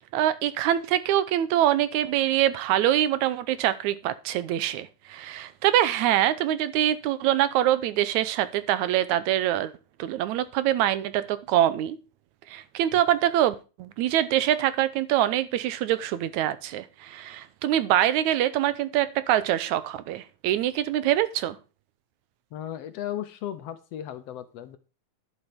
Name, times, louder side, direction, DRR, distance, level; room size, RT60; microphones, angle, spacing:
voice 1, 0.1-9.7 10.0-12.0 12.5-21.6, right 12 dB, 80° right, 15 dB, 2.1 m, -24 dB
voice 2, 22.5-24.8, left 11 dB, 70° left, 11 dB, 1.6 m, -35 dB
11.0 x 7.4 x 5.1 m, 0.32 s
omnidirectional pair, 3.4 m